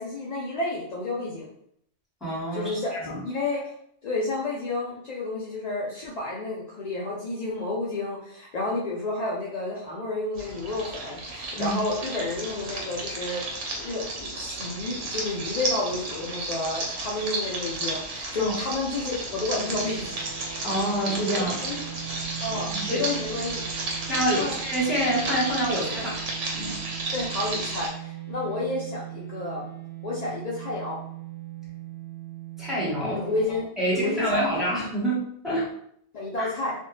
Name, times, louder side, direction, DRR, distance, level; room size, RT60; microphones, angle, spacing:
voice 1, 0.0-1.5 2.5-3.7 4.0-13.4 13.8-20.2 21.6-21.9 22.4-23.6 24.3-24.5 27.1-29.7 30.0-31.0 33.0-33.7 33.9-34.6 36.1-36.7, left 2 dB, 70° left, -5 dB, 0.4 m, -30 dB
voice 2, 2.2-3.2 11.5-11.8 18.4-18.5 20.6-21.6 22.5-23.0 24.1-26.2 26.5-26.8 32.6-33.2 33.5-35.2 35.4-35.7 36.4-36.5, right 1 dB, ahead, -8 dB, 1.0 m, -27 dB
sound 1, 10.3-27.9, right 2 dB, 80° right, 1.0 m, -33 dB
sound 2, 19.7-33.5, right 11 dB, 85° left, 1.0 m, -39 dB
2.5 x 2.1 x 3.0 m, 0.69 s
omnidirectional pair, 1.2 m